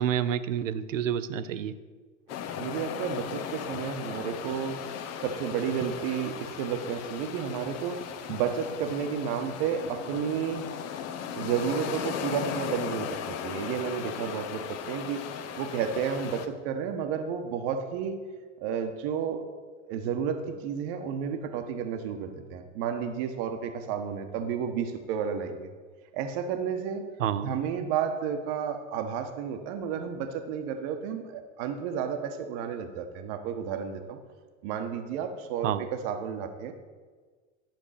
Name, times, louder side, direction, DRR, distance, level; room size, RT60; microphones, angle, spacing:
voice 1, 0.0-1.7 27.2-27.5 35.6-35.8, right 9 dB, 75° right, 13 dB, 0.7 m, -28 dB
sound 1, 2.3-16.5, left 8 dB, 40° left, 1.0 m, -37 dB
voice 2, 2.6-4.8 5.2-8.0 8.3-10.7 11.4-15.2 15.6-18.2 18.6-19.4 19.8-25.7 26.1-27.1 27.4-34.2 34.6-36.7, right 7 dB, 55° right, 7 dB, 1.2 m, -32 dB
12.0 x 6.5 x 4.9 m, 1.5 s
hypercardioid pair, 85°, 38 cm